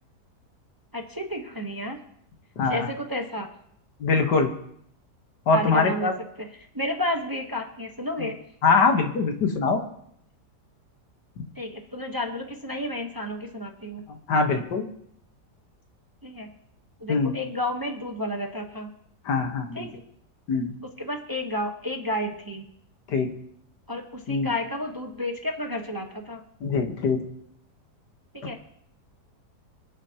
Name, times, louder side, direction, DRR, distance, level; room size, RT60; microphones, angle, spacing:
voice 1, 0.9-2.0 2.6-3.5 5.5-6.1 6.4-6.5 6.7-8.4 11.6-14.0 16.2-16.5 17.0-18.9 19.7-19.9 21.0-22.7 23.9-26.4 28.3-28.6, left 1 dB, 15° right, 3 dB, 0.9 m, -31 dB
voice 2, 2.6-2.9 4.0-4.5 5.5-6.1 8.2-8.3 8.6-9.8 14.1-14.8 17.1-17.3 19.3-19.9 20.5-20.7 23.1-23.3 24.3-24.5 26.6-27.2, left 4 dB, 85° left, 4 dB, 2.0 m, -23 dB
26.0 x 9.2 x 2.9 m, 0.71 s
omnidirectional pair, 1.8 m